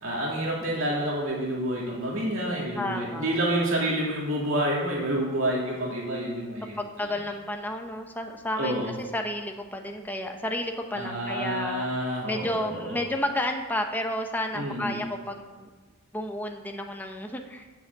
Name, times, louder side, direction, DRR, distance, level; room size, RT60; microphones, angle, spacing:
voice 1, 0.0-7.1 8.6-8.9 10.9-13.0 14.5-15.0, right 1 dB, 70° right, -3 dB, 2.5 m, -29 dB
voice 2, 2.7-3.4 6.8-11.9 12.3-15.7 16.1-17.7, left 1 dB, 10° left, 3 dB, 0.8 m, -31 dB
8.1 x 6.1 x 7.8 m, 1.3 s
head